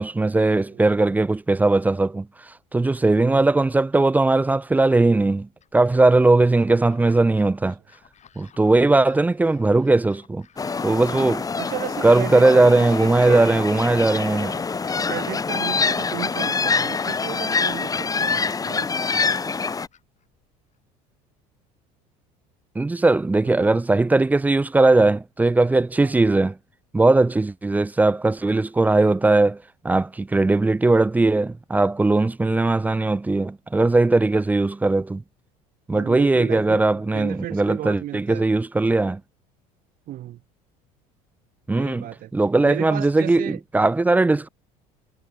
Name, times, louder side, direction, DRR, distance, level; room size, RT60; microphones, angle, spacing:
voice 1, 0.0-2.3 2.7-7.8 8.4-10.5 10.8-11.4 12.0-14.6 22.8-26.5 26.9-29.6 29.8-35.2 35.9-39.2 41.7-42.1 42.3-44.5, right 2 dB, 10° right, 0.3 m, -19 dB
sound 1, 5.6-20.8, left 8 dB, 40° left, 5.9 m, -57 dB
sound 2, 10.6-19.9, left 5 dB, 20° left, 0.9 m, -25 dB
voice 2, 11.6-13.5 15.0-19.7 23.4-23.8 26.0-26.2 35.9-38.5 40.1-40.4 41.7-42.3 42.6-43.6, right 14 dB, 50° right, 1.1 m, -34 dB
supercardioid pair, 85°, 18 cm